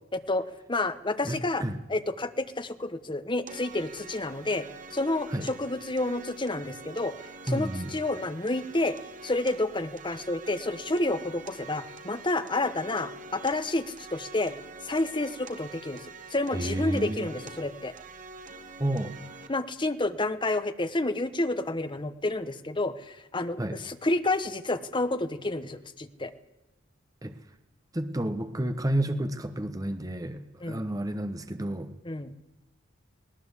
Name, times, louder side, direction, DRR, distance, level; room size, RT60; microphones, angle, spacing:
voice 1, 0.1-1.6 1.9-9.0 9.2-14.5 14.8-17.9 19.5-26.3 30.6-30.8 32.0-32.3, left 2 dB, 25° left, 10 dB, 1.1 m, -30 dB
voice 2, 1.2-1.8 5.3-5.5 7.5-7.9 16.5-17.3 18.8-19.1 23.6-23.8 27.2-27.4 27.9-31.9, right 1 dB, 20° right, 9 dB, 1.0 m, -31 dB
sound 1, 3.5-19.5, right 3 dB, 40° right, 2.1 m, -45 dB
19.0 x 18.5 x 8.3 m, 1.0 s
head